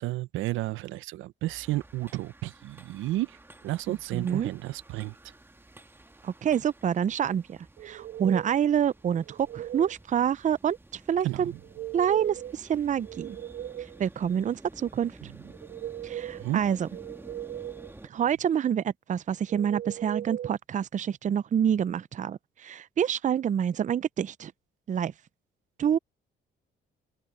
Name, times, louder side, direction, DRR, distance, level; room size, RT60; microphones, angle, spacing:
voice 1, 0.0-3.4 3.6-5.2 11.2-11.6 16.4-16.6, right 17 dB, 90° right, 0.6 m, -32 dB
sound 1, 1.5-18.1, right 2 dB, 10° right, 1.4 m, -52 dB
voice 2, 3.9-4.5 6.2-11.5 11.9-13.4 14.0-15.3 16.0-16.9 18.0-24.5 24.9-25.1 25.8-26.0, right 8 dB, 40° right, 0.5 m, -27 dB
sound 2, 7.8-8.6 9.1-10.0 11.6-12.6 12.9-14.0 15.4-16.5 16.9-17.9 19.5-20.5, right 12 dB, 70° right, 1.5 m, -38 dB
cardioid pair, 90°, 20 cm